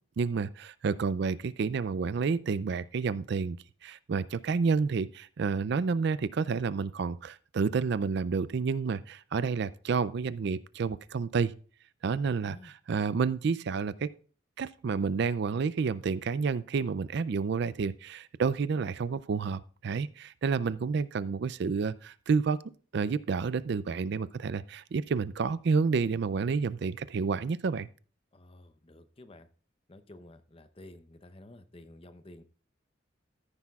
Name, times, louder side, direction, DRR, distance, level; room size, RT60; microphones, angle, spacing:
voice 1, 0.2-11.5 12.0-14.1 14.6-22.6 22.9-27.9, right 5 dB, 60° right, 0.4 m, -30 dB
voice 2, 12.2-12.7 28.3-29.5 29.9-32.4, left 1 dB, 30° left, 0.6 m, -52 dB
14.0 x 9.7 x 2.4 m
head